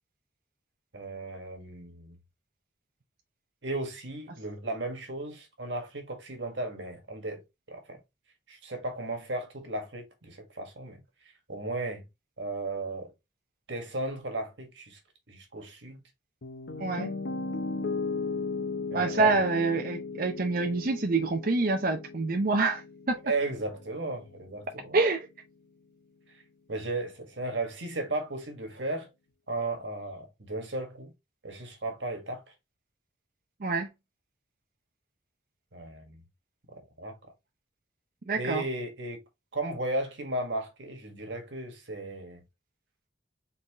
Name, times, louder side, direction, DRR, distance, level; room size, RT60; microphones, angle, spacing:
voice 1, 0.9-2.2 3.6-7.4 7.7-8.0 8.5-11.0 11.5-12.0 12.4-13.1 13.7-15.0 15.3-16.0 18.9-19.4 23.2-25.0 26.7-29.1 29.5-31.1 31.4-32.4 35.7-36.2 37.0-37.2 38.3-39.2 39.5-42.4, right 2 dB, 90° right, 1.6 m, -35 dB
Piano, 16.4-24.5, left 4 dB, 75° left, 0.7 m, -36 dB
voice 2, 16.8-17.1 18.9-23.2 24.9-25.3 33.6-33.9 38.3-38.6, right 3 dB, 50° right, 0.6 m, -26 dB
4.2 x 4.0 x 2.9 m
head